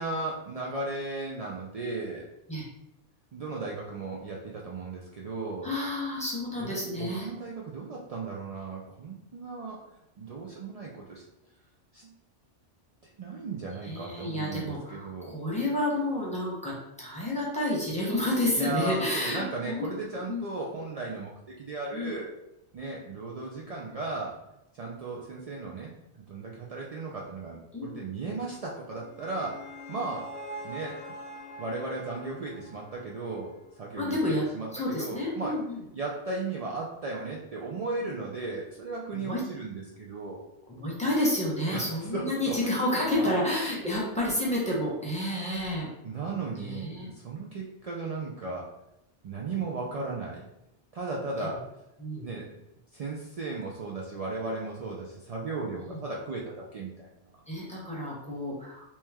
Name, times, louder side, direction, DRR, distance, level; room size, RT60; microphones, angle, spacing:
voice 1, 0.0-2.2 3.3-5.7 6.6-9.8 10.2-11.2 11.9-12.1 13.2-15.3 18.5-21.3 21.6-22.3 22.7-24.4 24.7-29.6 29.9-30.3 30.6-31.0 31.6-35.6 35.9-40.4 41.7-43.4 43.7-43.8 46.0-48.7 49.2-50.4 50.9-51.7 52.2-52.5 52.9-57.1, right 3 dB, 70° right, -3 dB, 0.3 m, -36 dB
voice 2, 5.6-7.3 13.8-19.9 20.3-20.4 21.9-22.1 27.7-28.0 33.9-34.4 34.7-35.8 39.1-39.4 40.7-45.9 46.6-47.1 52.0-52.3 55.8-56.0 57.5-58.8, left 1 dB, 5° left, -5 dB, 0.8 m, -30 dB
sound 1, 28.8-34.0, left 1 dB, 75° left, 0.9 m, -44 dB
3.0 x 2.9 x 3.5 m, 0.85 s
omnidirectional pair, 1.2 m